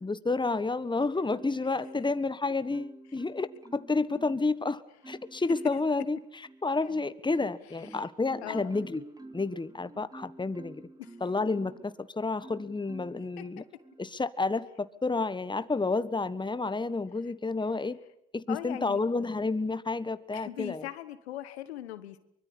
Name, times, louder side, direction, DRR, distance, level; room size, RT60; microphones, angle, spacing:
voice 1, 0.0-9.0 9.3-10.9 11.2-13.6 14.0-18.0 18.3-20.9, left 3 dB, 15° left, 15 dB, 1.4 m, -30 dB
Marimba xylophone, 1.3-2.3 2.7-4.5 5.0-5.9 6.4-11.9 12.4-13.3 13.8-14.1, right 2 dB, 10° right, 3.1 m, -49 dB
voice 2, 8.4-8.7 9.9-10.1 11.1-11.2 13.4-13.5 18.5-19.0 20.3-22.2, left 13 dB, 85° left, 14 dB, 1.3 m, -40 dB
24.0 x 22.0 x 8.6 m, 0.75 s
hypercardioid pair, 55°, 31 cm